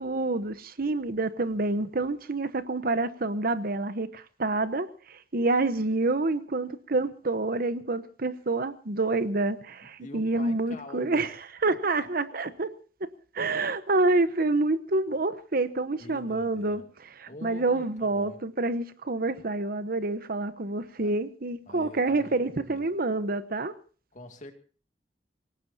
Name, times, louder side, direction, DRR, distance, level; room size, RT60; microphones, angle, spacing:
voice 1, 0.0-11.3 11.6-12.7 13.3-16.8 17.2-23.7, right 2 dB, 55° right, 1.0 m, -27 dB
voice 2, 9.8-11.4 11.7-11.8 16.0-16.9 17.3-18.4 21.0-21.1 21.7-22.9 24.1-24.5, left 1 dB, 45° left, 2.4 m, -45 dB
26.5 x 17.5 x 2.7 m
head